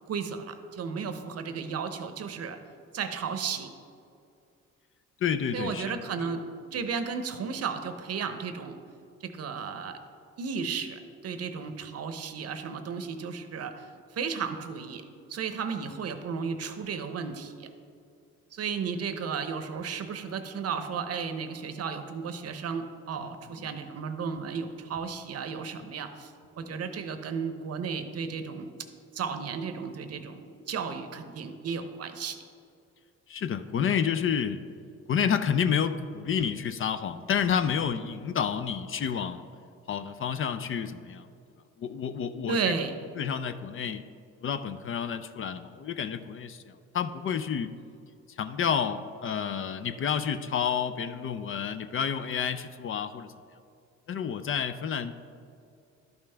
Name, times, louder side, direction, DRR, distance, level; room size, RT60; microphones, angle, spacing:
voice 1, 0.1-2.6 2.9-3.7 5.5-6.4 6.7-8.8 9.2-10.0 10.4-15.0 15.3-17.7 18.5-26.3 26.6-28.7 29.1-32.4 42.5-42.9, right 6 dB, 55° right, 8 dB, 0.7 m, -34 dB
voice 2, 5.2-6.0 23.2-23.3 33.3-34.6 35.1-39.5 39.9-41.3 41.8-42.7 43.2-44.1 44.4-47.8 48.3-53.3 54.1-55.1, left 7 dB, 45° left, 11 dB, 0.4 m, -30 dB
12.0 x 5.5 x 3.3 m, 2.5 s
cardioid pair, 90°, 30 cm